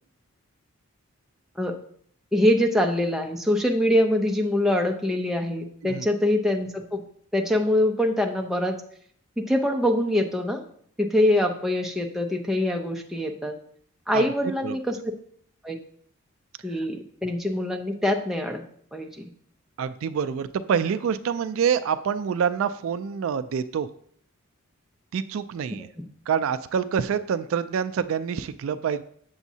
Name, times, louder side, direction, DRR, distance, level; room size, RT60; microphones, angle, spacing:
voice 1, 2.3-7.0 7.3-8.8 9.4-10.6 11.0-13.5 14.1-15.0 15.6-15.8 16.6-18.6 18.9-19.2, left 1 dB, ahead, 2 dB, 0.4 m, -24 dB
voice 2, 19.8-23.9 25.1-25.9 26.3-29.0, right 7 dB, 65° right, 13 dB, 0.3 m, -26 dB
7.1 x 7.0 x 2.7 m, 0.62 s
head